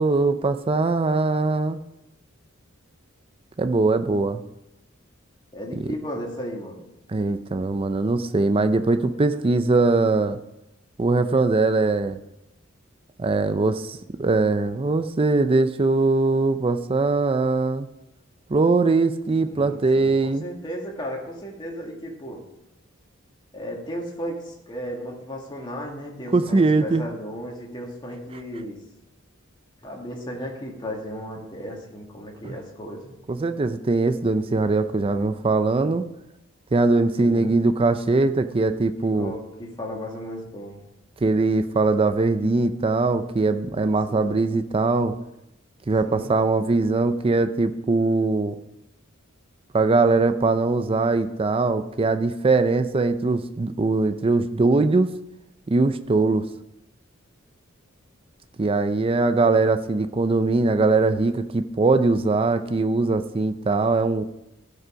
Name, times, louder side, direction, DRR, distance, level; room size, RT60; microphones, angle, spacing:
voice 1, 0.0-1.8 3.6-4.4 5.8-5.9 7.1-10.4 11.0-12.2 13.2-17.9 18.5-20.4 26.3-27.0 32.4-32.5 33.3-36.1 36.7-39.3 41.2-45.1 45.9-48.6 49.7-55.1 55.7-56.4 58.6-64.2, right 3 dB, 25° right, 10 dB, 0.5 m, -21 dB
voice 2, 5.5-6.9 19.4-22.4 23.5-28.8 29.8-33.1 37.2-37.6 39.0-40.8 44.1-44.4 46.0-46.3, equal, 20° left, -1 dB, 2.0 m, -35 dB
15.0 x 5.4 x 5.1 m, 0.89 s
head